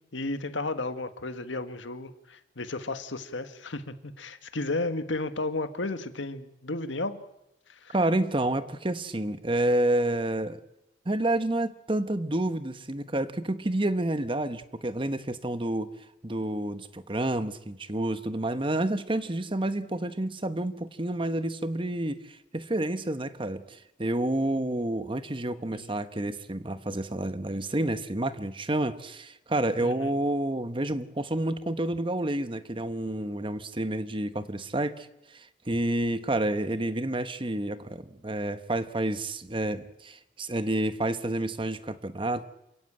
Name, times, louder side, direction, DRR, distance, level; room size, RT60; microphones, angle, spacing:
voice 1, 0.1-7.2 7.7-7.9 25.7-25.9 29.8-30.1, left 2 dB, 90° left, 9 dB, 1.7 m, -33 dB
voice 2, 7.9-10.6 11.0-15.9 16.2-42.4, right 1 dB, 30° right, 11 dB, 1.1 m, -29 dB
28.0 x 16.0 x 8.8 m, 0.90 s
head